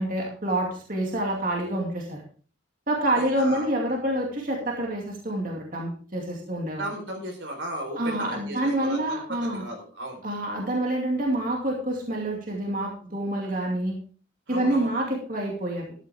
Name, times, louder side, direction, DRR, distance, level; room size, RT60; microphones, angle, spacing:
voice 1, 0.0-2.2 2.9-6.8 8.0-9.6 10.2-14.0 14.5-15.9, right 1 dB, 45° right, -1 dB, 2.5 m, -27 dB
voice 2, 3.2-3.7 6.8-10.2 14.5-15.1, right 1 dB, 80° right, 3 dB, 4.1 m, -36 dB
13.5 x 11.0 x 3.5 m, 0.41 s
head